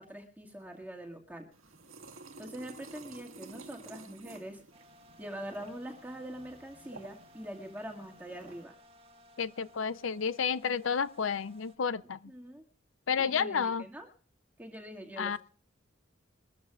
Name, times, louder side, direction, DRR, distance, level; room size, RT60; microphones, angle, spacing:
voice 1, 0.0-1.5 2.4-4.6 5.2-8.8 12.3-12.6 13.2-14.1 14.6-15.4, right 1 dB, 10° right, 2.0 m, -44 dB
sound 1, 1.5-8.6, right 3 dB, 90° right, 1.9 m, -52 dB
sound 2, 4.7-11.8, left 1 dB, 30° right, 1.5 m, -59 dB
voice 2, 9.4-12.2 13.1-13.8 15.2-15.4, left 6 dB, 70° left, 0.6 m, -31 dB
22.5 x 14.0 x 2.4 m
head